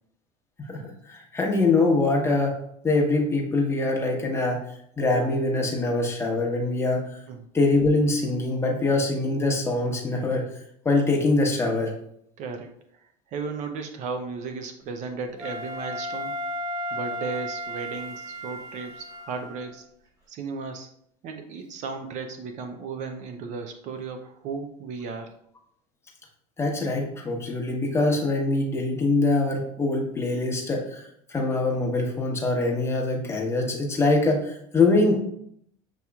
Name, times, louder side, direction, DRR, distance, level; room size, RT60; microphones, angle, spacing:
voice 1, 0.6-2.6 2.8-4.6 5.0-7.2 7.5-10.5 10.8-11.9 26.6-35.2, left 2 dB, 15° left, 0 dB, 0.9 m, -24 dB
voice 2, 12.4-12.7 13.3-16.3 16.9-19.8 20.3-20.9 21.2-25.3, right 4 dB, 50° right, 5 dB, 0.5 m, -35 dB
Wind instrument woodwind instrument, 15.4-19.7, equal, 20° right, 1.7 m, -34 dB
6.7 x 2.9 x 2.3 m, 0.70 s
supercardioid pair, 120°, 16 cm